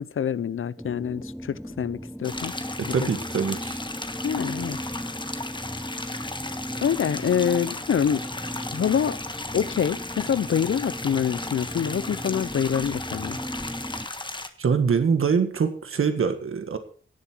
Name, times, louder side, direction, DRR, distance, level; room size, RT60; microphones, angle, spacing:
voice 1, 0.0-2.5 2.8-3.1 4.2-4.8 6.8-8.2 8.6-9.2 9.5-13.4, left 8 dB, 80° left, 0.7 m, -26 dB
sound 1, 0.8-14.1, equal, ahead, 1.0 m, -37 dB
sound 2, 2.2-14.5, left 2 dB, 20° left, 1.4 m, -35 dB
voice 2, 2.8-3.8 14.6-16.8, right 6 dB, 90° right, 1.7 m, -24 dB
17.5 x 7.3 x 4.6 m
wide cardioid pair, 95°, 21 cm